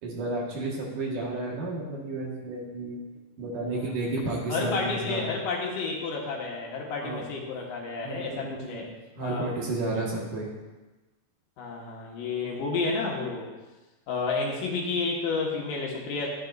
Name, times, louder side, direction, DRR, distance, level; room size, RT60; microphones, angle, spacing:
voice 1, 0.0-3.0 3.4-5.3 7.0-7.3 8.0-8.8 9.2-10.5, right 2 dB, 65° right, -3 dB, 3.1 m, -32 dB
voice 2, 4.5-8.9 9.2-9.5 11.6-13.5 14.1-16.3, left 4 dB, 70° left, -1 dB, 2.8 m, -31 dB
12.5 x 9.7 x 2.6 m, 1.2 s
omnidirectional pair, 4.1 m